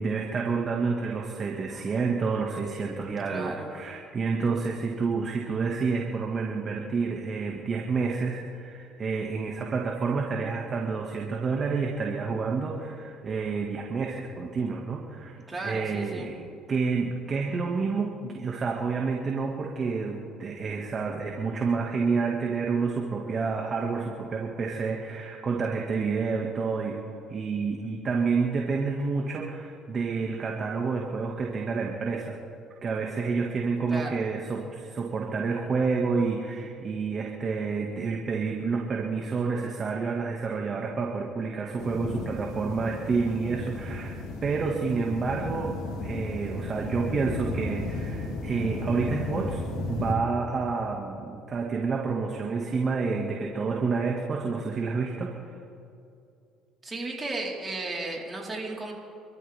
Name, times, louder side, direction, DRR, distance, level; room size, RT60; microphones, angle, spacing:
voice 1, 0.0-16.4 16.7-27.0 27.3-32.4 32.8-49.6 49.9-55.4, right 4 dB, 40° right, 0 dB, 2.1 m, -29 dB
voice 2, 3.2-3.7 15.5-16.3 33.9-34.2 56.8-58.9, right 2 dB, 25° right, -2 dB, 4.5 m, -34 dB
sound 1, 41.8-50.1, left 2 dB, 75° left, 3.4 m, -34 dB
27.5 x 13.5 x 3.7 m, 2.6 s
supercardioid pair, 80°, 0 cm